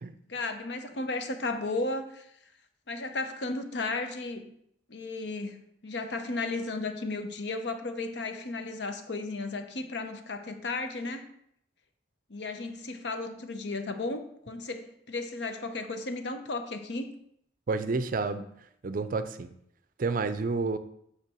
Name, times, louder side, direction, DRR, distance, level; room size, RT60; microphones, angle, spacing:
voice 1, 0.3-2.3 2.9-4.5 4.9-11.2 12.3-17.1, left 3 dB, 65° left, 7 dB, 0.8 m, -34 dB
voice 2, 17.7-18.5 18.8-19.5 20.0-20.8, right 4 dB, 45° right, 11 dB, 0.5 m, -29 dB
8.4 x 3.3 x 6.1 m, 0.73 s
head